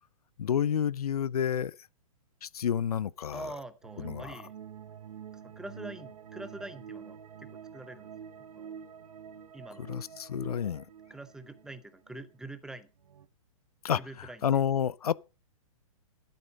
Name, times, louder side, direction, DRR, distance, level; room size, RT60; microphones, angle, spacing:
voice 1, 0.4-1.8 2.4-3.5 4.0-4.4 9.9-10.8 13.8-15.1, left 8 dB, 85° left, 0.7 m, -30 dB
voice 2, 3.3-4.5 5.4-8.7 9.5-10.0 11.1-12.9 14.0-14.6, right 2 dB, 5° right, 0.8 m, -45 dB
sound 1, 3.8-12.3 12.7-12.8 13.0-13.3, right 8 dB, 80° right, 1.2 m, -47 dB
11.5 x 8.7 x 5.2 m
hypercardioid pair, 140°, 19 cm